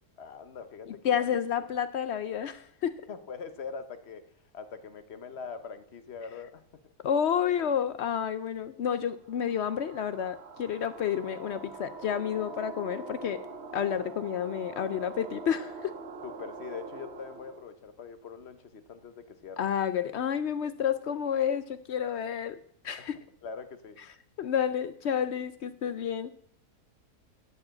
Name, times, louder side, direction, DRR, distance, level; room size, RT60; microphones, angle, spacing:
voice 1, 0.2-1.3 1.6-1.7 3.1-4.2 4.5-6.6 16.2-19.7 23.0-23.1 23.4-24.0, left 5 dB, 50° left, 10 dB, 1.0 m, -43 dB
voice 2, 0.9-3.0 7.0-13.4 13.7-16.0 19.6-22.6 22.8-23.2 24.4-26.3, left 8 dB, 70° left, 13 dB, 0.6 m, -30 dB
sound 1, 9.3-17.7, right 4 dB, 50° right, 1.0 m, -44 dB
14.5 x 4.9 x 7.6 m, 0.66 s
omnidirectional pair, 1.7 m